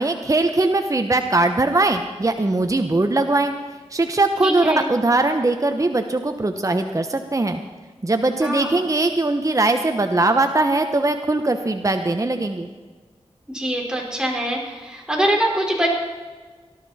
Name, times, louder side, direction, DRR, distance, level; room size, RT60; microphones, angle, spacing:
voice 1, 0.0-3.5 3.9-7.6 8.0-12.7, right 2 dB, 30° right, 6 dB, 1.0 m, -20 dB
voice 2, 4.4-4.8 8.4-8.7 13.5-15.9, right 1 dB, 5° right, -1 dB, 4.7 m, -23 dB
18.0 x 12.0 x 4.3 m, 1.4 s
cardioid pair, 50°, 11 cm